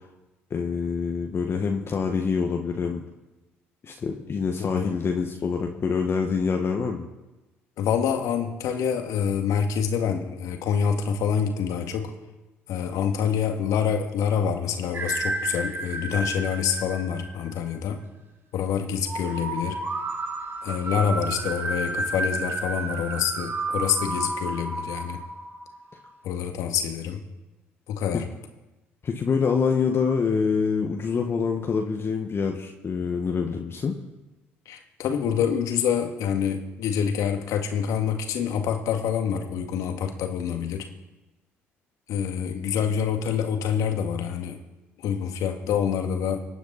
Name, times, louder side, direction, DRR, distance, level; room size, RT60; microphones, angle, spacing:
voice 1, 0.5-3.0 3.8-7.1 29.0-33.9, left 5 dB, 40° left, 3 dB, 1.6 m, -26 dB
voice 2, 4.6-4.9 7.8-12.1 12.7-18.0 18.5-19.8 20.6-25.2 26.2-27.2 27.9-28.3 34.7-40.9 42.1-44.6 45.0-46.5, left 7 dB, 60° left, 5 dB, 2.0 m, -26 dB
sound 1, 14.9-17.7 19.1-26.1, right 2 dB, 35° right, 3.2 m, -31 dB
26.0 x 9.2 x 4.3 m, 1.1 s
hypercardioid pair, 50°, 6 cm